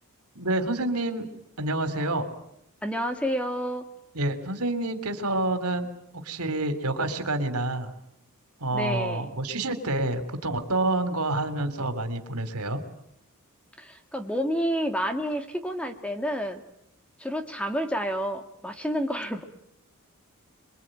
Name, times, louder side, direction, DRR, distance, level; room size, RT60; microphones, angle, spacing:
voice 1, 0.4-1.3 1.6-2.3 4.1-5.9 6.1-7.9 8.6-12.8, right 2 dB, 85° right, 9 dB, 3.4 m, -28 dB
voice 2, 2.8-3.8 8.7-9.3 13.8-16.6 17.2-19.4, equal, 5° left, 6 dB, 2.2 m, -29 dB
27.0 x 23.0 x 9.2 m, 0.76 s
head